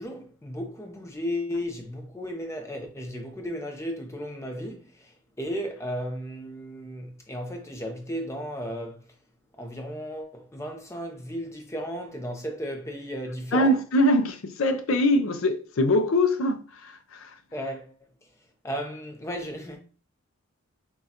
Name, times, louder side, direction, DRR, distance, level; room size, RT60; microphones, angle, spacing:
voice 1, 0.0-9.1 9.5-13.8 17.5-18.3 18.6-19.8, equal, 15° left, 0.6 m, -35 dB
voice 2, 13.5-17.4, left 1 dB, 65° left, 0.5 m, -23 dB
6.1 x 2.3 x 2.8 m
head